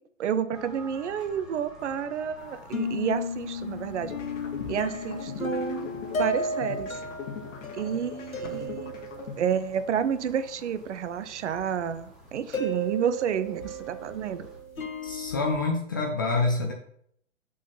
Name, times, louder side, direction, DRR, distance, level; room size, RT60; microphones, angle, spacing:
voice 1, 0.2-4.1 4.7-7.0 7.7-8.9 9.4-14.5, right 8 dB, 60° right, 12 dB, 0.8 m, -30 dB
sound 1, 0.5-14.6, equal, ahead, 1.3 m, -51 dB
sound 2, 2.4-9.9 10.3-10.4 11.6-11.7 12.5-15.7, left 1 dB, 90° left, 1.1 m, -34 dB
sound 3, 4.0-10.0, left 6 dB, 65° left, 1.5 m, -41 dB
voice 2, 15.0-16.7, left 3 dB, 15° left, 1 dB, 0.3 m, -27 dB
6.3 x 3.9 x 5.8 m, 0.68 s
figure-of-eight pair, 120°, 40 cm